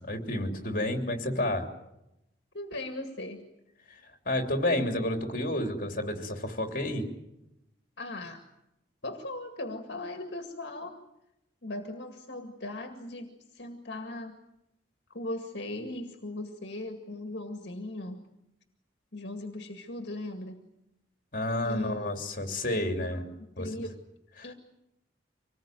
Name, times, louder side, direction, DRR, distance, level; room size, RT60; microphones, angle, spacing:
voice 1, 0.1-1.7 4.2-7.1 21.3-23.2 23.6-23.9 24.4-24.5, left 1 dB, 45° left, 5 dB, 3.2 m, -30 dB
voice 2, 2.5-3.4 8.0-8.4 9.0-11.0 11.6-14.4 15.1-18.2 19.1-20.6 21.6-22.3 23.1-23.2 23.6-24.0 24.4-24.5, left 1 dB, 60° left, 5 dB, 2.1 m, -38 dB
25.5 x 20.0 x 9.3 m, 0.88 s
head